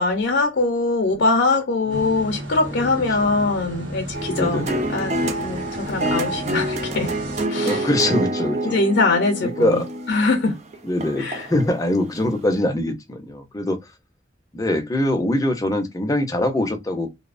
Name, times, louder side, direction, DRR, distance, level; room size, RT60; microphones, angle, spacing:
voice 1, 0.0-7.1 7.5-7.9 8.6-9.8 10.1-10.6 11.2-11.5, left 3 dB, 70° left, 0.5 m, -22 dB
sound 1, 1.9-7.5, right 1 dB, 90° right, 0.9 m, -34 dB
sound 2, 4.1-11.6 12.2-12.3, right 1 dB, 40° right, 0.4 m, -27 dB
voice 2, 4.3-4.8 5.9-6.1 7.7-8.8 9.4-9.9 10.8-13.8 14.5-17.1, left 1 dB, 20° left, 0.5 m, -23 dB
2.6 x 2.0 x 2.4 m
head